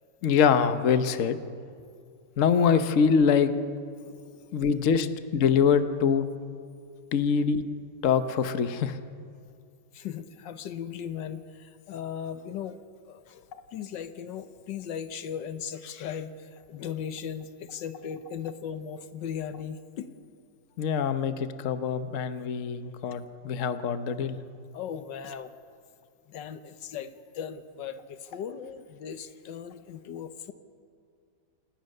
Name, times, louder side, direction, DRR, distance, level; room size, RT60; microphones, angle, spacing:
voice 1, 0.2-1.4 2.4-3.5 4.5-6.3 7.1-7.6 8.0-9.0 13.5-13.6 20.8-24.4, left 6 dB, 50° left, 10 dB, 1.2 m, -24 dB
voice 2, 4.0-4.6 9.9-12.8 13.0-20.1 24.7-25.5 26.3-30.5, left 8 dB, 85° left, 11 dB, 1.6 m, -38 dB
28.0 x 18.5 x 6.7 m, 2.2 s
omnidirectional pair, 1.9 m